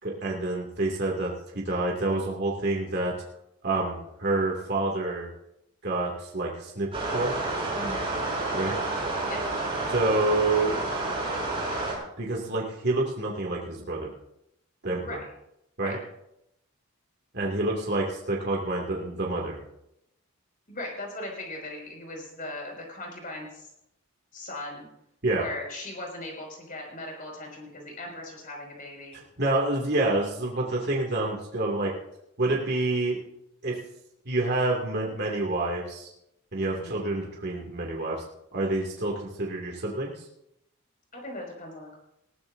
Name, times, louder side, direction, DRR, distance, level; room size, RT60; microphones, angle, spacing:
voice 1, 0.0-3.1 3.6-5.3 5.8-7.3 8.5-8.8 9.9-10.7 12.2-14.1 14.8-15.2 15.8-16.0 17.3-19.6 25.2-25.4 29.1-31.9 32.4-33.2 33.6-33.7 34.3-36.1 36.5-38.2 38.5-40.1, right 2 dB, 50° right, -2 dB, 2.4 m, -28 dB
sound 1, 6.9-11.9, right 2 dB, 25° right, 5.7 m, -29 dB
voice 2, 20.7-23.7 24.3-24.9 25.3-29.2 36.7-36.9 41.1-42.0, left 1 dB, 40° left, 0 dB, 5.4 m, -38 dB
20.5 x 15.5 x 2.7 m, 0.82 s
head